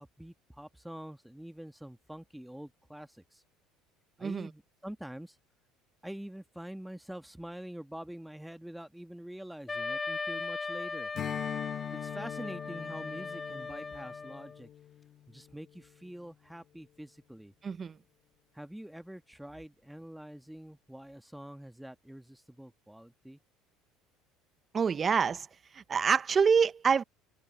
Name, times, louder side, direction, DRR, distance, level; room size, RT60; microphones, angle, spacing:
voice 1, 0.0-3.1 4.2-5.3 6.0-11.1 12.0-14.7 15.3-17.5 18.6-23.4, right 1 dB, 5° right, 1.5 m, -45 dB
voice 2, 4.2-4.5 17.6-18.0 24.7-25.5 25.7-27.0, right 6 dB, 35° right, 1.0 m, -26 dB
Wind instrument woodwind instrument, 9.7-14.6, left 4 dB, 20° left, 0.4 m, -38 dB
Strum, 11.1-15.9, left 10 dB, 50° left, 1.5 m, -42 dB
supercardioid pair, 85°, 0 cm